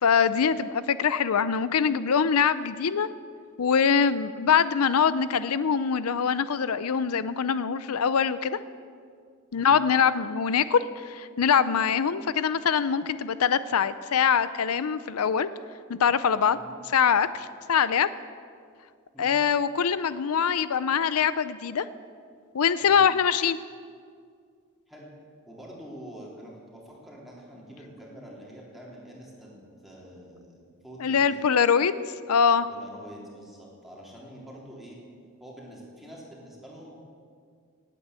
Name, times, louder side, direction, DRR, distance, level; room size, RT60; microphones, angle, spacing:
voice 1, 0.0-3.1 3.6-8.6 9.5-15.5 15.9-16.6 16.9-18.1 19.2-21.9 22.5-23.6 31.0-32.7, left 7 dB, 90° left, 15 dB, 0.5 m, -23 dB
voice 2, 16.5-16.8 19.1-19.4 22.8-23.1 24.9-25.1 25.5-31.4 32.7-35.0 35.4-37.0, equal, ahead, -4 dB, 3.6 m, -46 dB
18.0 x 9.1 x 8.2 m, 2.2 s
head